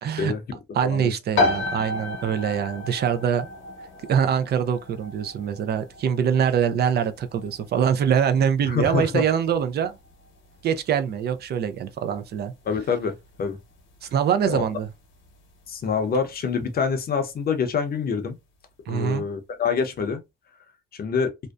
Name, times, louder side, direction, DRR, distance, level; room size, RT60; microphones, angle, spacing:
voice 1, 0.0-0.3 0.7-3.5 4.1-10.0 10.6-12.5 14.0-14.9 18.9-19.2, right 8 dB, 55° right, 0.4 m, -24 dB
voice 2, 0.8-1.1 8.7-9.2 12.7-13.6 14.5-14.6 15.7-18.4 18.9-20.2 20.9-21.3, left 5 dB, 50° left, 0.6 m, -26 dB
sound 1, 1.3-15.8, left 2 dB, 75° left, 0.9 m, -33 dB
2.6 x 2.1 x 2.2 m
cardioid pair, 90°, 20 cm